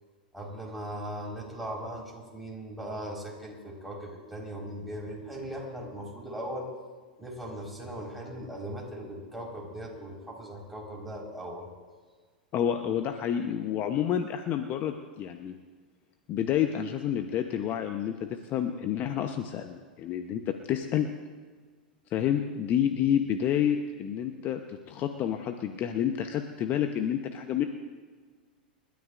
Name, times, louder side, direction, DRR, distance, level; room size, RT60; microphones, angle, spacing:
voice 1, 0.3-6.7 7.2-11.7, right 1 dB, ahead, -1 dB, 4.7 m, -39 dB
voice 2, 12.5-15.5 16.3-21.1 22.1-27.6, left 9 dB, 40° left, 6 dB, 1.0 m, -29 dB
29.0 x 13.0 x 2.6 m, 1.5 s
figure-of-eight pair, 95°, 5 cm